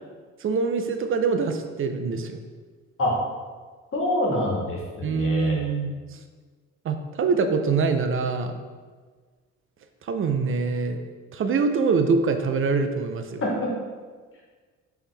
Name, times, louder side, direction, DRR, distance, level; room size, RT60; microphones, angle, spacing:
voice 1, 0.4-2.4 5.0-6.2 6.8-8.6 10.0-11.0 11.3-13.4, right 4 dB, 45° right, 7 dB, 0.4 m, -24 dB
voice 2, 3.9-5.6 13.4-13.7, left 1 dB, 45° left, -3 dB, 1.4 m, -26 dB
4.6 x 3.4 x 3.3 m, 1.5 s
cardioid pair, 90°, 30 cm